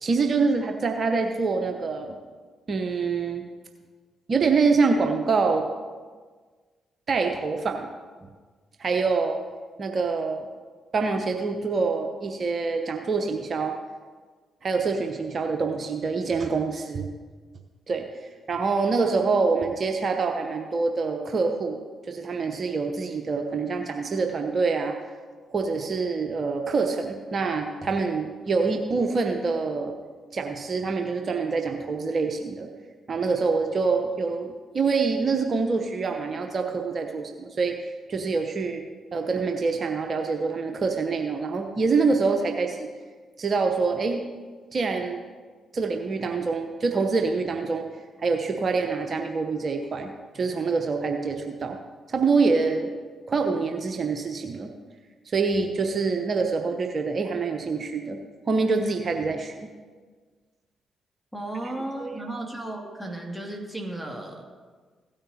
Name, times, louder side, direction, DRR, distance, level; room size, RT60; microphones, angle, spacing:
voice 1, 0.0-2.1 2.7-3.4 4.3-5.6 7.1-7.9 8.8-9.4 9.8-10.5 10.9-13.7 14.6-17.1 17.9-18.1 18.5-21.8 22.1-25.0 25.5-29.9 30.3-32.7 33.1-37.8 38.1-38.8 39.1-42.9 43.4-44.2 44.7-45.2 45.7-47.9 48.2-50.1 50.3-51.8 52.1-52.9 53.3-54.7 55.3-58.2 58.5-59.7 62.0-62.1, right 4 dB, 50° right, 4 dB, 0.8 m, -25 dB
voice 2, 61.3-64.4, right 1 dB, 5° left, 2 dB, 2.3 m, -34 dB
16.5 x 8.9 x 2.8 m, 1.5 s
hypercardioid pair, 45°, 0 cm